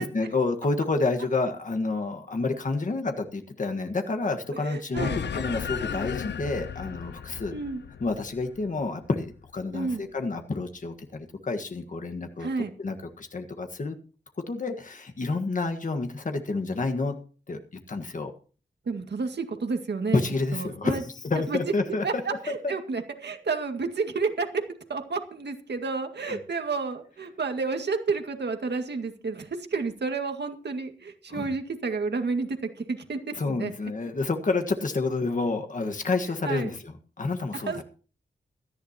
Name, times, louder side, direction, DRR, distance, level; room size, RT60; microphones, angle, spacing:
voice 1, 0.0-7.6 8.0-12.5 12.8-13.9 14.5-17.2 17.5-17.6 17.9-18.3 20.1-22.2 22.6-22.7 26.3-26.4 31.3-31.5 33.3-37.8, left 3 dB, 45° left, 5 dB, 1.5 m, -29 dB
voice 2, 4.5-5.2 7.5-7.8 9.7-10.0 12.4-12.7 18.9-20.2 20.5-21.0 21.5-21.6 22.0-24.6 24.9-33.7 36.4-36.7 37.5-37.8, right 4 dB, 70° right, 6 dB, 2.0 m, -30 dB
sound 1, 5.0-9.7, left 7 dB, 80° left, 0.7 m, -35 dB
17.5 x 13.5 x 2.9 m, 0.38 s
wide cardioid pair, 115°, 18 cm